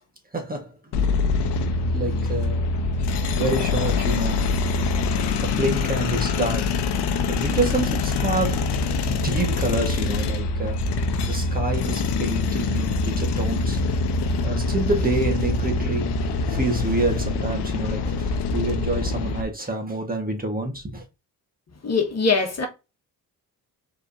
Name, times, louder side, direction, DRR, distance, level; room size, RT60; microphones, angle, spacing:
voice 1, 0.3-1.0 1.9-2.7 3.3-4.5 5.4-6.8 7.3-10.9 11.2-13.9 14.2-21.0, right 2 dB, 20° right, 1.4 m, -28 dB
sound 1, 0.9-19.4, left 3 dB, 70° left, 0.9 m, -24 dB
voice 2, 21.8-22.7, left 4 dB, 35° left, 1.4 m, -22 dB
4.5 x 3.4 x 2.7 m
supercardioid pair, 55°, 42 cm